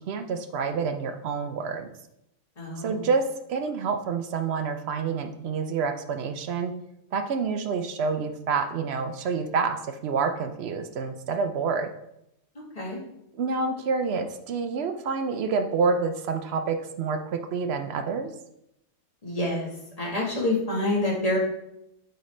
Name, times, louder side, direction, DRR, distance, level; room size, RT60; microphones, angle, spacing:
voice 1, 0.1-1.9 2.8-3.2 3.5-6.7 7.1-11.9 13.3-18.3, right 5 dB, 65° right, 6 dB, 0.6 m, -28 dB
voice 2, 2.6-3.0 12.7-13.0 19.2-19.7 20.0-21.4, left 1 dB, 25° left, -4 dB, 1.5 m, -27 dB
7.9 x 4.0 x 3.2 m, 0.81 s
omnidirectional pair, 1.5 m